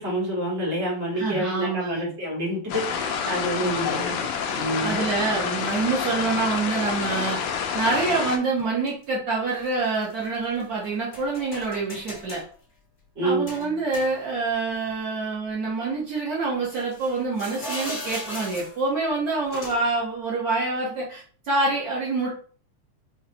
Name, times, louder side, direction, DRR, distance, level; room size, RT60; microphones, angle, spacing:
voice 1, 0.0-5.0 13.1-13.5, right 1 dB, 35° right, -3 dB, 1.1 m, -28 dB
voice 2, 1.1-2.1 3.6-4.1 4.8-12.4 13.2-22.3, right 3 dB, 80° right, -5 dB, 0.8 m, -26 dB
sound 1, 2.7-8.4, left 7 dB, 75° left, 1.5 m, -28 dB
sound 2, 2.9-3.0 4.0-4.1 5.1-5.3 8.6-9.0 9.5-10.6 11.1-12.5 13.5-14.5 14.9-15.0 16.7-18.9 19.5-19.9, left 1 dB, 25° left, 1.4 m, -38 dB
5.6 x 2.3 x 2.8 m, 0.43 s
omnidirectional pair, 3.3 m